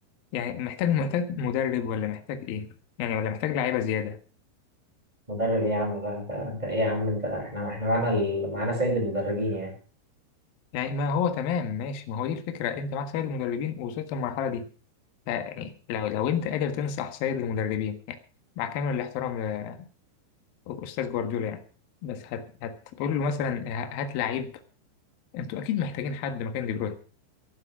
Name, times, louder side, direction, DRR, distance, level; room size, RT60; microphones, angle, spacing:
voice 1, 0.3-2.7 3.0-4.2 10.7-14.7 15.3-18.2 18.6-19.9 20.7-21.6 22.0-24.5 25.3-27.0, left 7 dB, 60° left, 2.8 m, -29 dB
voice 2, 5.3-9.7, equal, 10° right, 7.0 m, -27 dB
18.0 x 11.5 x 4.8 m
omnidirectional pair, 5.5 m